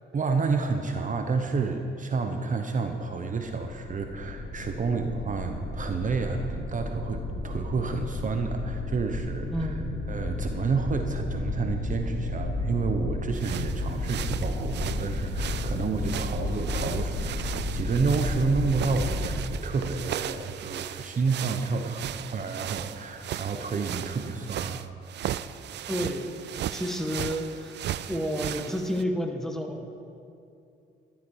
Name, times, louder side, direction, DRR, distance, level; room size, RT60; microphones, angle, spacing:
voice 1, 0.1-9.7 10.1-24.8, right 4 dB, 40° right, 5 dB, 1.0 m, -30 dB
sound 1, 3.4-19.3, left 2 dB, 75° left, 3.7 m, -32 dB
voice 2, 9.5-10.0 25.9-29.9, equal, ahead, 3 dB, 1.5 m, -31 dB
sound 2, 13.3-29.0, right 11 dB, 60° right, 0.5 m, -37 dB
14.5 x 12.0 x 4.8 m, 2.5 s
cardioid pair, 90°, 20 cm